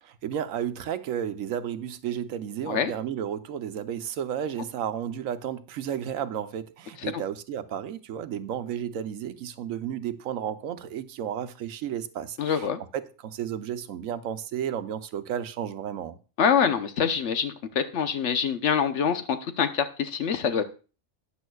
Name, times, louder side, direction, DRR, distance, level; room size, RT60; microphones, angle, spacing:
voice 1, 0.0-12.7 12.9-16.2, right 9 dB, 80° right, 1.1 m, -33 dB
voice 2, 12.4-12.8 16.4-20.6, left 7 dB, 65° left, 1.1 m, -25 dB
12.5 x 9.5 x 2.3 m
omnidirectional pair, 1.4 m